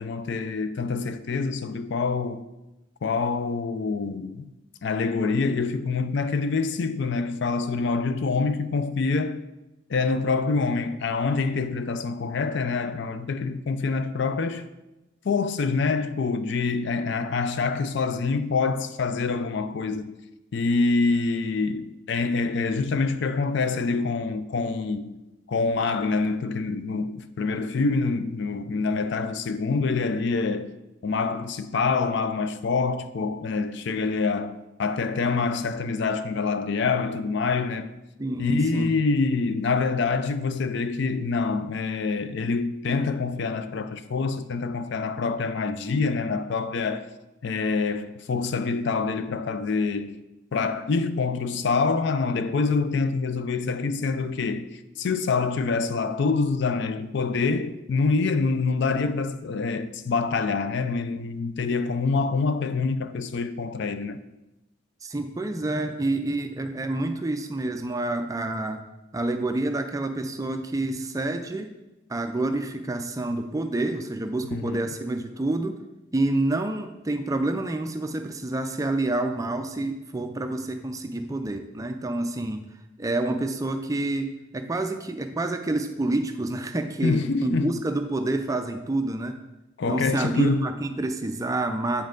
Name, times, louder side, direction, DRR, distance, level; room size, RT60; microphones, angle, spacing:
voice 1, 0.0-2.4 3.0-4.5 4.8-9.4 9.9-14.7 15.2-20.2 20.5-25.1 25.5-30.7 31.0-37.9 38.4-47.1 47.4-50.2 50.5-64.2 74.4-74.8 87.0-87.7 89.8-90.7, left 4 dB, 60° left, 0.4 m, -26 dB
voice 2, 38.2-38.9 65.0-68.8 69.1-71.7 72.1-75.8 76.1-82.6 83.0-89.4 89.9-92.1, right 2 dB, 15° right, 0.4 m, -28 dB
8.0 x 5.4 x 3.8 m
head